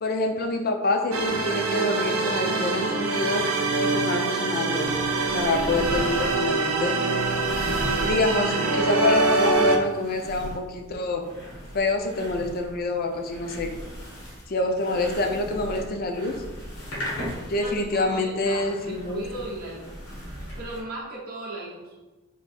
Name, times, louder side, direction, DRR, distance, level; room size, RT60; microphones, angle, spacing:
voice 1, 0.0-3.5 3.8-4.9 5.3-7.0 8.0-11.2 11.7-13.7 14.5-16.4 17.5-19.2, left 2 dB, 45° left, 4 dB, 0.5 m, -26 dB
sound 1, 1.1-9.8, right 3 dB, 80° right, 0.5 m, -24 dB
sound 2, 4.8-20.8, equal, 80° left, 1.4 m, -38 dB
voice 2, 17.6-20.0 20.6-22.0, right 2 dB, 45° right, -5 dB, 0.6 m, -37 dB
3.4 x 2.7 x 4.1 m, 1.2 s
head